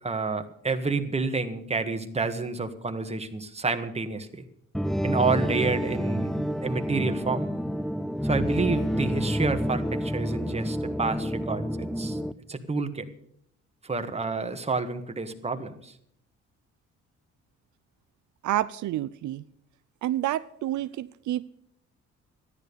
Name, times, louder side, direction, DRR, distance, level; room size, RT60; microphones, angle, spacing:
voice 1, 0.0-4.4 5.0-7.5 8.2-12.2 12.5-13.1 13.8-15.9, right 4 dB, 20° right, 7 dB, 1.7 m, -29 dB
sound 1, 4.7-12.3, equal, ahead, 0.5 m, -28 dB
voice 2, 18.4-19.4 20.0-21.4, right 13 dB, 75° right, 14 dB, 0.6 m, -29 dB
13.5 x 11.0 x 6.9 m, 0.70 s
cardioid pair, 90°, 30 cm